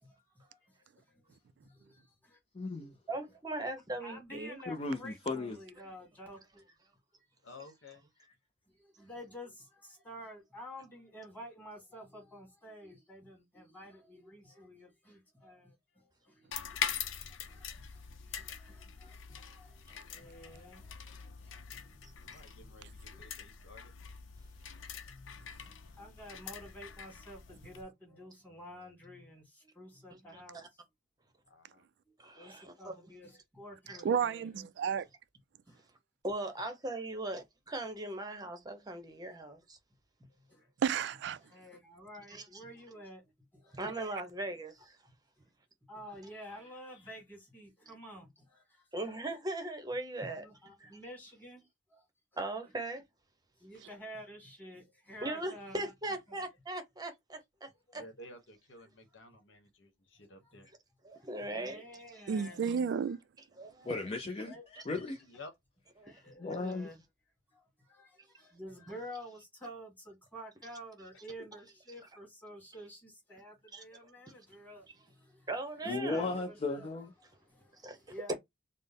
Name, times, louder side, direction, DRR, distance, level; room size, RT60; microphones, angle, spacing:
voice 1, 0.0-2.4 4.0-6.4 8.7-22.7 25.1-30.6 32.1-34.5 35.7-35.8 40.2-40.7 41.4-43.8 45.4-45.5 45.8-48.9 50.2-52.0 53.6-55.9 56.3-56.4 57.9-58.0 60.4-60.6 61.3-62.7 63.0-63.2 64.5-64.6 66.0-67.0 67.5-75.5 75.9-76.9 77.2-78.3, equal, 10° left, 1.9 m, -51 dB
voice 2, 2.5-2.9 4.7-5.6 63.9-64.6 64.9-65.2 66.4-66.9 75.9-77.1, left 3 dB, 30° left, 0.4 m, -35 dB
voice 3, 3.1-4.6 22.0-22.1 30.3-30.7 32.2-32.9 33.9-34.0 36.2-37.4 37.7-39.8 42.3-42.4 43.7-45.0 48.9-50.9 52.4-53.0 55.2-58.0 61.0-61.8 62.1-62.2 63.6-63.9 66.0-66.2 73.7-73.8 75.5-76.4 77.8-78.0 78.3-78.4, right 2 dB, 20° right, 0.7 m, -39 dB
voice 4, 7.4-8.1 22.2-23.9 31.5-31.9 57.9-60.7 65.2-65.5 71.4-71.5, left 2 dB, 70° left, 1.1 m, -53 dB
sound 1, 16.5-27.8, left 8 dB, 90° left, 0.5 m, -43 dB
voice 5, 34.0-35.0 40.8-41.4 62.3-63.2, right 7 dB, 65° right, 0.3 m, -31 dB
4.2 x 2.0 x 3.4 m
head